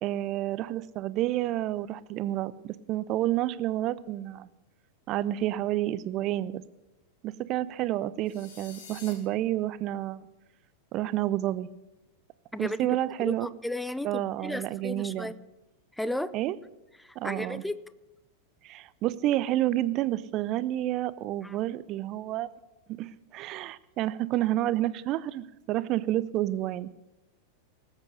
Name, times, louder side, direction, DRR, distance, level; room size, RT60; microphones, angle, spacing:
voice 1, 0.0-4.5 5.1-6.6 7.2-10.2 10.9-11.7 12.6-13.5 14.0-15.3 16.3-16.6 17.2-17.6 18.6-22.5 22.9-26.9, right 14 dB, 35° right, 0.5 m, -29 dB
sound 1, 8.3-9.1, left 6 dB, 55° left, 2.5 m, -47 dB
voice 2, 12.5-15.4 15.9-16.3 17.0-17.8 21.4-21.6, left 1 dB, 5° left, 0.6 m, -34 dB
19.0 x 8.3 x 6.5 m
figure-of-eight pair, 90°, 0 cm